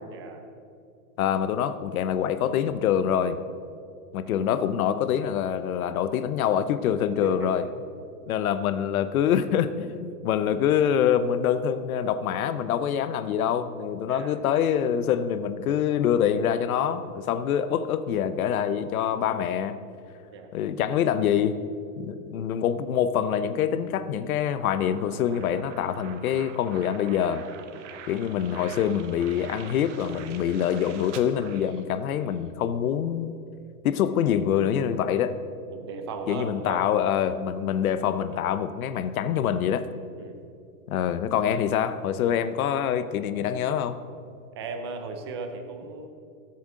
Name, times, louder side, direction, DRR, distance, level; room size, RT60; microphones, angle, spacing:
voice 1, 0.1-0.5 7.2-7.7 14.1-14.4 20.3-20.5 35.7-36.8 40.1-40.4 44.5-46.1, right 4 dB, 20° right, 5 dB, 0.4 m, -36 dB
voice 2, 1.2-3.4 4.1-7.7 8.3-19.8 20.5-21.6 22.0-27.4 28.1-33.4 33.8-35.4 36.3-39.9 40.9-44.0, left 9 dB, 65° left, 12 dB, 0.8 m, -25 dB
sound 1, 24.6-32.4, right 7 dB, 50° right, 1.0 m, -45 dB
20.0 x 8.5 x 3.8 m, 2.5 s
supercardioid pair, 165°, 47 cm